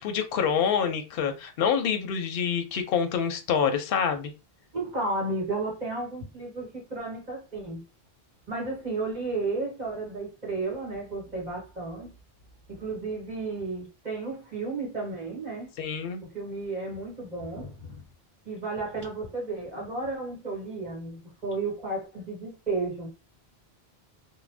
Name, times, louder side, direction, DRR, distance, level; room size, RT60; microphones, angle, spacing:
voice 1, 0.0-4.3 15.8-16.2, left 7 dB, 70° left, 0.7 m, -26 dB
voice 2, 4.7-7.8 8.5-12.1 12.7-15.7 16.2-18.0 18.4-23.1, right 3 dB, 45° right, 1.2 m, -33 dB
2.5 x 2.1 x 3.2 m
omnidirectional pair, 1.0 m